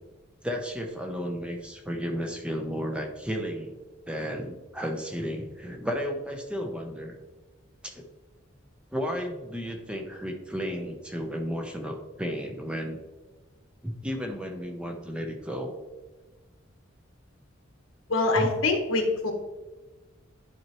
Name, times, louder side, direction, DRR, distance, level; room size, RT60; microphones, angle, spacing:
voice 1, 0.4-3.7 4.1-7.2 7.8-8.0 8.9-13.0 13.8-15.8 18.4-18.5, equal, 5° right, 2 dB, 0.7 m, -33 dB
voice 2, 18.1-19.3, left 3 dB, 85° left, 3 dB, 1.3 m, -24 dB
10.5 x 4.4 x 3.0 m, 1.2 s
head